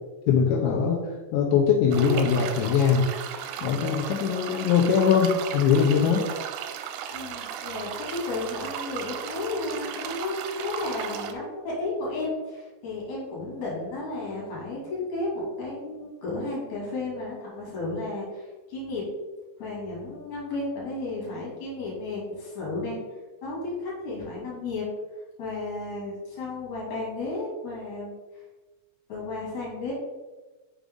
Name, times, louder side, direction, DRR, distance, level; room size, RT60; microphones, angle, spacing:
voice 1, 0.3-1.0 1.3-3.1 3.6-6.2, left 6 dB, 85° left, 0 dB, 2.6 m, -21 dB
sound 1, 1.9-11.3, right 8 dB, 85° right, 3.0 m, -36 dB
voice 2, 7.1-19.0 19.6-23.0 23.4-24.9 25.4-28.1 29.1-29.9, left 2 dB, 45° left, -5 dB, 3.0 m, -33 dB
7.1 x 5.3 x 3.7 m, 1.2 s
omnidirectional pair, 5.9 m